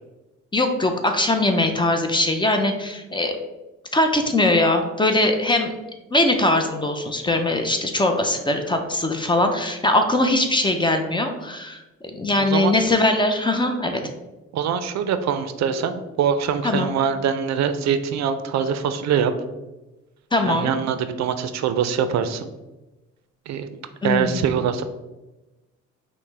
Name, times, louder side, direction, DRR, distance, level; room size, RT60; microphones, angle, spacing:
voice 1, 0.5-3.4 3.9-5.7 6.1-14.0 16.6-16.9 20.3-20.8 24.0-24.4, left 2 dB, 15° left, 5 dB, 0.5 m, -21 dB
voice 2, 12.4-12.8 14.5-19.3 20.5-22.5 23.5-24.8, right 7 dB, 65° right, 10 dB, 0.4 m, -23 dB
5.5 x 2.1 x 3.2 m, 1.1 s
cardioid pair, 90°, 30 cm